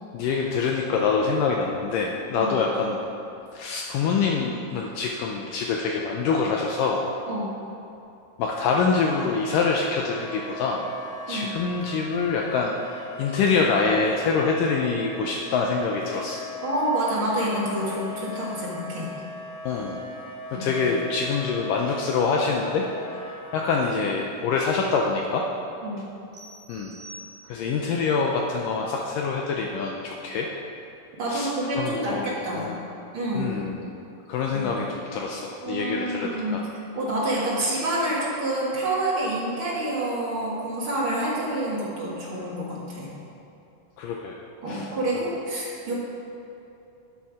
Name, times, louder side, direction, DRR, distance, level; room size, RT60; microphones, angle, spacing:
voice 1, 0.1-3.0 3.5-7.0 8.4-10.8 11.3-16.4 19.6-20.0 20.5-22.8 23.1-25.4 26.7-26.9 27.4-30.5 31.3-31.5 31.8-32.8 33.3-33.9 34.3-36.6 44.0-44.4 44.7-45.3, left 4 dB, 80° left, 0 dB, 1.9 m, -25 dB
Wind instrument woodwind instrument, 8.5-23.8, left 2 dB, 60° left, 1.6 m, -40 dB
voice 2, 16.6-19.1 20.5-20.7 25.8-26.0 31.2-32.8 33.1-33.5 34.5-34.7 35.6-36.6 37.0-43.1 44.6-45.9, right 1 dB, 45° right, -6 dB, 1.8 m, -28 dB
sound 1, 26.3-27.9, right 1 dB, 85° right, 3.4 m, -46 dB
12.0 x 7.1 x 4.9 m, 2.8 s
omnidirectional pair, 4.6 m